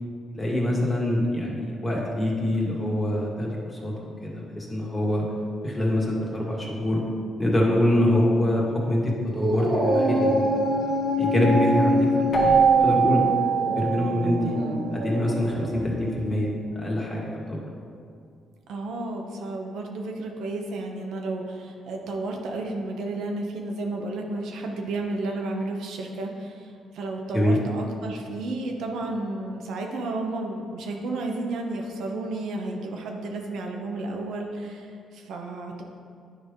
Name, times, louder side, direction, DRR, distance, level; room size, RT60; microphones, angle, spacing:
voice 1, 0.3-3.9 4.2-5.3 5.6-7.0 7.4-10.5 10.8-13.3 13.6-14.6 15.0-17.7 27.3-27.6, left 1 dB, 15° left, -4 dB, 1.8 m, -25 dB
Dog, 9.3-15.9, equal, 60° right, 1.7 m, -25 dB
Keyboard (musical), 12.3-14.9, right 7 dB, 40° left, 1.5 m, -22 dB
voice 2, 14.4-14.8 18.7-35.8, right 2 dB, 80° right, 1 dB, 0.8 m, -32 dB
9.8 x 3.4 x 5.1 m, 2.3 s
cardioid pair, 90°, 0 cm